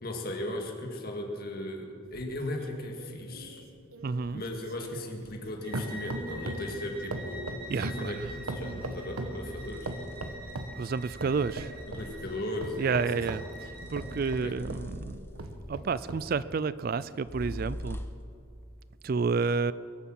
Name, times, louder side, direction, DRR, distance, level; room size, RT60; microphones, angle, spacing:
voice 1, 0.0-3.6 4.3-7.6 7.9-10.1 11.9-13.2 14.4-14.6, left 1 dB, 45° left, 2 dB, 2.0 m, -37 dB
sound 1, 2.1-5.5 5.7-6.7 7.1-9.4 9.9-10.8 11.2-12.1 12.6-14.9 15.4-16.3 16.8-16.9, right 2 dB, 85° right, 1.3 m, -39 dB
voice 2, 4.0-4.4 7.7-8.8 10.8-11.8 12.8-15.3 15.7-18.0 19.0-19.7, right 4 dB, 45° right, 17 dB, 0.3 m, -30 dB
Bowed string instrument, 5.6-14.4, right 1 dB, 25° right, 3.2 m, -46 dB
sound 2, 8.2-8.5 9.4-12.4 13.6-15.9 17.2-18.3, equal, 10° left, 0.7 m, -43 dB
22.5 x 8.2 x 7.6 m, 2.4 s
head